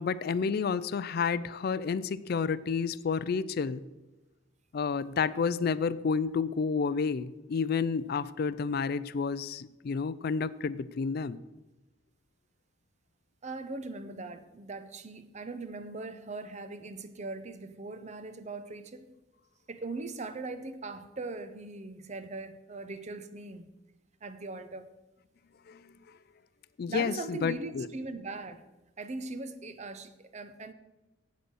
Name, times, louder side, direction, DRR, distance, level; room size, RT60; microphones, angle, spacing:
voice 1, 0.0-3.8 4.7-11.4 25.7-26.0 26.8-27.9, left 5 dB, 50° left, 0.4 m, -30 dB
voice 2, 13.4-19.1 19.7-23.7 24.2-24.9 26.9-28.6 29.0-30.7, right 3 dB, 35° right, 0.7 m, -40 dB
8.2 x 7.7 x 6.3 m
head